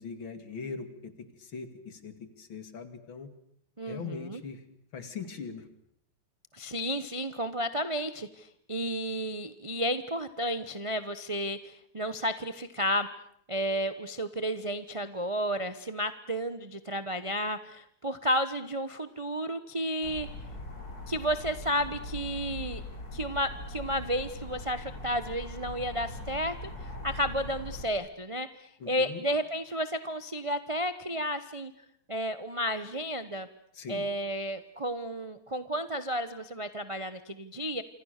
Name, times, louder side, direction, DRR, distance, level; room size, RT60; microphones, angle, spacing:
voice 1, 0.0-3.3 3.9-4.6 4.9-5.7 28.8-29.2 33.7-34.1, left 5 dB, 65° left, 10 dB, 3.0 m, -41 dB
voice 2, 3.8-4.4 6.5-13.1 13.5-20.3 21.1-22.8 23.1-31.7 32.1-33.5 33.9-37.8, equal, 30° right, 12 dB, 0.5 m, -32 dB
sound 1, 20.0-27.9, left 2 dB, 45° left, 4.7 m, -41 dB
27.5 x 26.0 x 6.6 m, 0.67 s
omnidirectional pair, 2.3 m